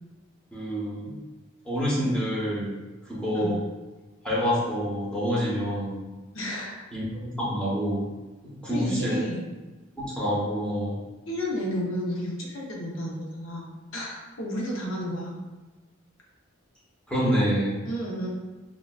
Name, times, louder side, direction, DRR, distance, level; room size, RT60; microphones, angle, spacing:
voice 1, 0.5-1.2 1.7-2.8 3.1-3.6 4.2-6.1 6.9-8.1 8.4-9.2 10.0-11.0 17.1-17.8, equal, 5° left, -8 dB, 0.8 m, -27 dB
voice 2, 6.3-6.7 8.7-9.4 11.3-15.4 17.8-18.3, equal, 80° left, -3 dB, 0.8 m, -32 dB
3.7 x 2.5 x 2.3 m, 1.2 s
head